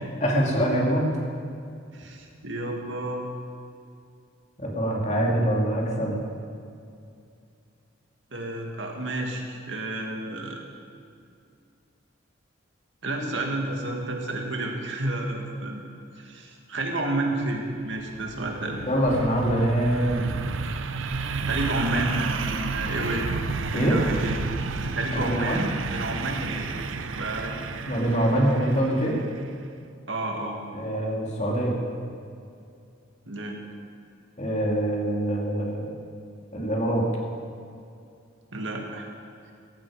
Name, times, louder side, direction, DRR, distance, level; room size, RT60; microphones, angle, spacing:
voice 1, 0.2-1.1 4.6-6.2 18.8-20.3 23.7-24.0 25.1-25.6 27.8-29.2 30.7-31.8 34.4-35.9 36.5-37.0, right 1 dB, 35° left, -1 dB, 2.6 m, -24 dB
voice 2, 1.9-3.3 8.3-10.6 13.0-15.8 16.2-18.8 21.5-23.3 23.7-24.4 25.0-27.5 30.1-30.6 33.3-33.6 38.5-39.1, right 2 dB, 70° right, 1 dB, 2.2 m, -30 dB
sound 1, 17.8-29.5, right 4 dB, 85° right, 0.8 m, -32 dB
17.0 x 14.5 x 5.0 m, 2.4 s
head